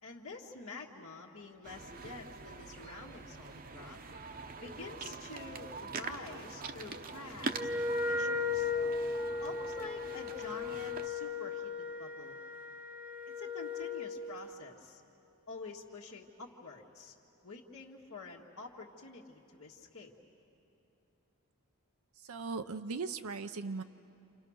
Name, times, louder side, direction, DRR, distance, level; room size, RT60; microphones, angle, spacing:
voice 1, 0.0-4.0 4.6-8.7 9.4-12.4 13.3-15.0 15.5-17.1 17.4-20.1, left 3 dB, 80° left, -4 dB, 1.7 m, -48 dB
sound 1, 1.6-11.1, right 4 dB, 40° right, 0.8 m, -44 dB
Wind instrument woodwind instrument, 7.5-14.2, left 4 dB, 5° right, 0.9 m, -36 dB
voice 2, 22.3-23.8, right 4 dB, 85° right, 8 dB, 0.7 m, -38 dB
29.0 x 28.0 x 6.4 m, 2.8 s
head